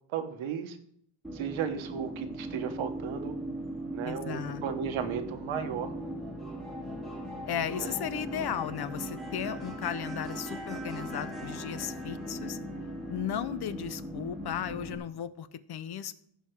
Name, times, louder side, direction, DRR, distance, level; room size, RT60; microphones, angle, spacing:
voice 1, 0.1-0.8 1.3-3.3 3.9-5.9 7.8-8.0, right 8 dB, 80° right, 8 dB, 1.4 m, -35 dB
sound 1, 1.2-15.0, right 1 dB, ahead, 2.2 m, -39 dB
voice 2, 4.0-4.6 7.5-12.6 13.1-16.1, left 9 dB, 55° left, 15 dB, 0.7 m, -35 dB
15.0 x 5.8 x 4.7 m, 0.67 s
cardioid pair, 135°, 47 cm